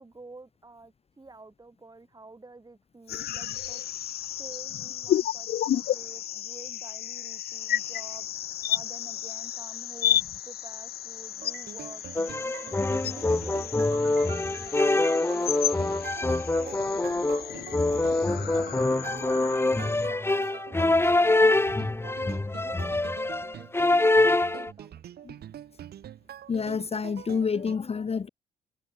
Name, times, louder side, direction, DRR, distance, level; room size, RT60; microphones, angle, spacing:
voice 1, 0.0-3.8 4.4-8.3 8.7-16.1 16.5-18.7 19.0-25.0, right 3 dB, 20° right, 6.9 m, -50 dB
sound 1, 3.1-20.1, left 11 dB, 65° left, 0.9 m, -33 dB
sound 2, 11.4-27.8, right 11 dB, 65° right, 3.6 m, -45 dB
sound 3, 12.2-24.7, left 2 dB, 15° left, 1.2 m, -25 dB
voice 2, 26.5-28.3, left 5 dB, 35° left, 1.1 m, -28 dB
supercardioid pair, 65°, 17 cm